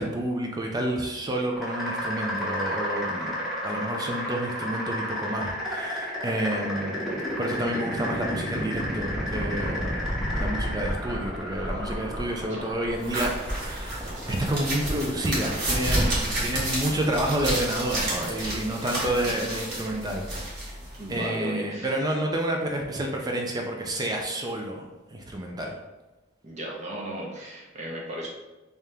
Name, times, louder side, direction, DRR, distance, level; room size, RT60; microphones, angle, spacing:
voice 1, 0.0-10.1 10.4-13.3 13.6-20.7 21.1-25.8, right 1 dB, 20° right, 1 dB, 0.4 m, -30 dB
sound 1, 1.6-20.3, equal, ahead, 0.9 m, -32 dB
sound 2, 13.0-21.2, right 1 dB, 60° right, 1.5 m, -30 dB
voice 2, 21.0-22.0 26.4-28.3, equal, 35° right, -3 dB, 0.9 m, -35 dB
3.4 x 2.8 x 3.4 m, 1.1 s
head